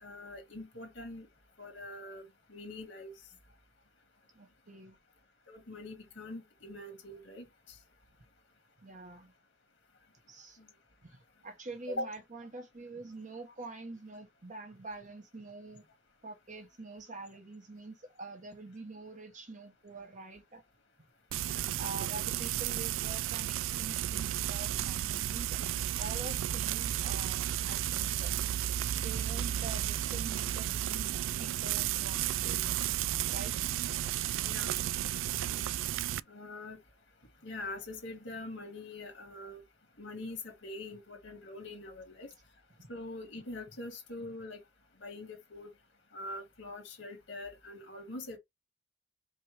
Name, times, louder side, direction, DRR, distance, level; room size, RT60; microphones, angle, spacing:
voice 1, 0.0-1.3 1.6-2.2 2.5-3.1 5.5-7.8 10.6-10.7 11.9-12.1 21.5-21.7 34.4-34.7 36.3-36.8 37.4-39.6 40.0-42.3 42.9-44.6 45.0-45.7 46.1-48.4, left 2 dB, 75° left, 1.7 m, -43 dB
voice 2, 4.3-5.0 8.8-9.3 10.3-10.6 11.0-15.8 16.2-20.6 21.8-25.6 26.0-28.3 29.0-32.7 33.3-33.9 42.8-42.9, right 3 dB, 40° right, 1.2 m, -46 dB
Frying (food), 21.3-36.2, right 12 dB, 85° right, 0.3 m, -33 dB
5.3 x 2.8 x 3.5 m
head